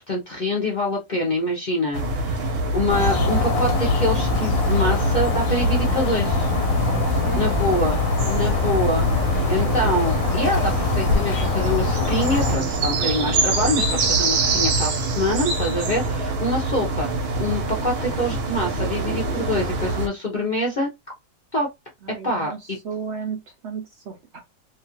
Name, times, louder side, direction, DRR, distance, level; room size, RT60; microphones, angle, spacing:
voice 1, 0.0-6.5 7.3-8.0 8.3-20.9 21.5-21.7 22.2-22.8, left 1 dB, 45° left, 0.6 m, -25 dB
sound 1, 1.9-20.1, right 2 dB, 85° right, 1.3 m, -24 dB
sound 2, 2.9-12.6, left 5 dB, 70° left, 1.0 m, -24 dB
voice 2, 22.0-22.6 22.8-24.4, right 6 dB, 60° right, 0.8 m, -33 dB
2.8 x 2.3 x 2.8 m
omnidirectional pair, 1.6 m